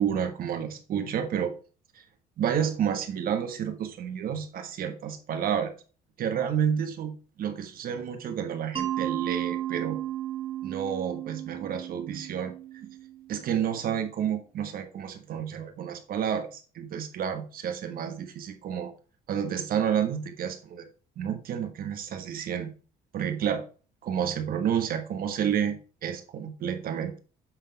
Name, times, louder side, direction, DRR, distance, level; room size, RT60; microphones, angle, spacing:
voice 1, 0.0-1.5 1.9-2.0 2.4-5.7 6.2-10.0 10.6-12.5 12.8-12.9 13.3-18.9 19.3-20.9 21.2-22.7 23.1-23.7 24.0-27.2, right 8 dB, 60° right, 1.4 m, -30 dB
Mallet percussion, 8.8-13.5, right 12 dB, 30° right, 1.2 m, -34 dB
7.6 x 3.7 x 4.6 m
cardioid pair, 110°, 17 cm